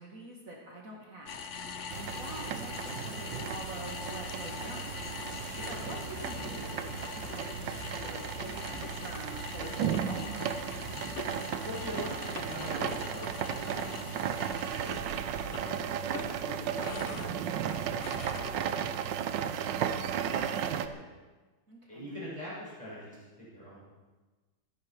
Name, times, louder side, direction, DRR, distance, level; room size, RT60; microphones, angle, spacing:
voice 1, 0.0-1.4 1.9-10.8 21.7-22.1, right 1 dB, 45° right, -2 dB, 2.6 m, -46 dB
sound 1, 1.3-19.0, left 6 dB, 50° left, 1.0 m, -43 dB
sound 2, 1.9-20.9, right 8 dB, 75° right, 1.5 m, -35 dB
voice 2, 5.4-5.8 11.6-19.6 19.9-21.1 21.9-23.8, equal, 20° right, -8 dB, 6.8 m, -44 dB
26.0 x 10.5 x 4.7 m, 1.3 s
omnidirectional pair, 2.0 m